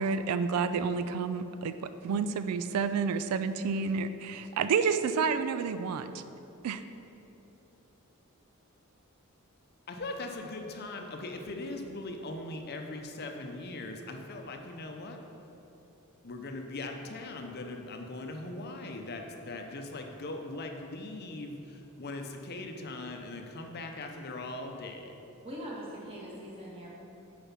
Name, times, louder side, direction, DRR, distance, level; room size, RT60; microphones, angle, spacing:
voice 1, 0.0-1.7 2.0-6.1 6.6-6.8, right 5 dB, 85° right, 11 dB, 0.3 m, -29 dB
voice 2, 9.9-15.2 16.2-25.1, left 2 dB, 45° left, 4 dB, 0.6 m, -40 dB
voice 3, 25.4-26.9, equal, 25° right, -5 dB, 1.6 m, -42 dB
6.9 x 4.8 x 5.7 m, 2.9 s
head